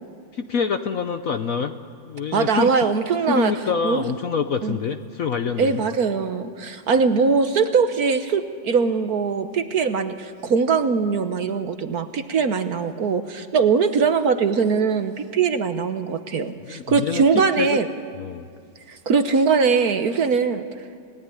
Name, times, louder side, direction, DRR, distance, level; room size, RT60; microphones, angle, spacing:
voice 1, 0.3-1.7 2.0-2.9 3.3-5.8 16.7-17.7 18.2-18.4, left 6 dB, 60° left, 8 dB, 1.0 m, -26 dB
voice 2, 2.3-3.5 3.8-4.0 4.6-4.8 5.6-17.9 18.9-20.8, right 5 dB, 55° right, 9 dB, 1.3 m, -21 dB
29.0 x 17.5 x 9.9 m, 2.2 s
omnidirectional pair, 2.1 m